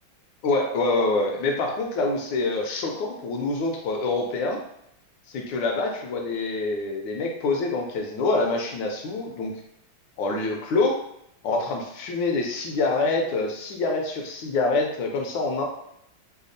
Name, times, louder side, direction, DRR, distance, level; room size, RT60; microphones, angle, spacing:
voice 1, 0.4-4.6 5.3-9.5 10.2-11.0 11.4-15.6, left 3 dB, 75° left, 1 dB, 1.2 m, -26 dB
3.4 x 2.3 x 3.8 m, 0.76 s
omnidirectional pair, 2.2 m